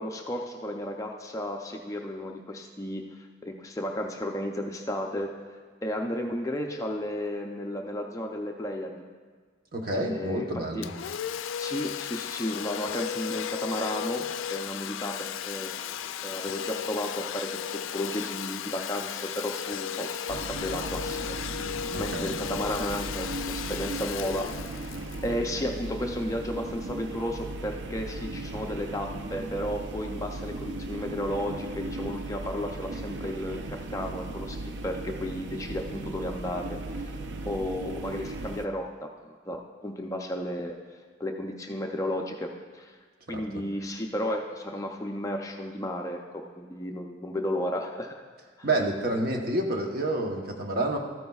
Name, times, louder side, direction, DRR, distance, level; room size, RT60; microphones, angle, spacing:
voice 1, 0.0-5.3 5.8-9.0 9.9-10.5 10.7-10.9 11.6-14.2 14.5-15.7 16.2-24.9 25.2-37.2 37.4-40.8 41.2-43.0 43.3-48.2 48.6-48.7, left 1 dB, 15° left, 2 dB, 0.4 m, -33 dB
voice 2, 9.7-10.9 21.9-22.4 43.3-43.4 48.6-51.0, right 1 dB, 50° right, 1 dB, 0.9 m, -29 dB
Domestic sounds home sounds, 10.8-26.3, left 8 dB, 85° left, 0.3 m, -35 dB
sound 1, 20.3-38.7, right 2 dB, 65° right, 0.5 m, -37 dB
13.5 x 9.3 x 2.3 m, 1.5 s
head